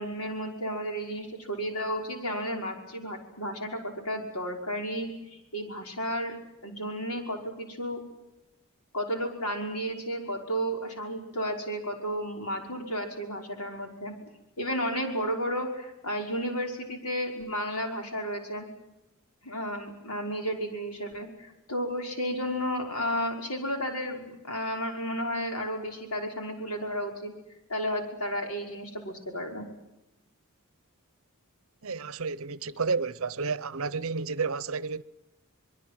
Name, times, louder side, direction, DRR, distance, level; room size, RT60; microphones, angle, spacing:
voice 1, 0.0-6.3 6.6-8.0 8.9-14.1 14.6-18.7 19.4-27.3 27.7-29.7, equal, 90° left, 5.7 m, -33 dB
voice 2, 31.8-35.0, right 4 dB, 65° right, 0.8 m, -31 dB
25.0 x 22.5 x 7.8 m
head